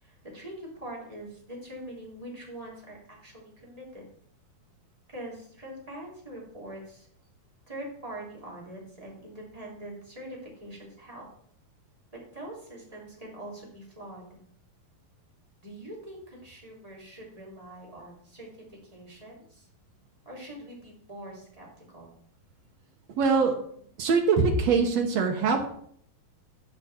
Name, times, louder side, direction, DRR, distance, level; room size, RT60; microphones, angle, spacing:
voice 1, 0.0-4.0 5.1-7.1 7.7-11.3 12.3-14.4 15.6-18.5 18.9-19.6 20.2-22.1, right 1 dB, 10° right, -5 dB, 3.3 m, -43 dB
voice 2, 23.1-23.6 24.0-25.7, right 5 dB, 65° right, 3 dB, 1.7 m, -23 dB
15.5 x 5.4 x 4.4 m, 0.65 s
omnidirectional pair, 4.2 m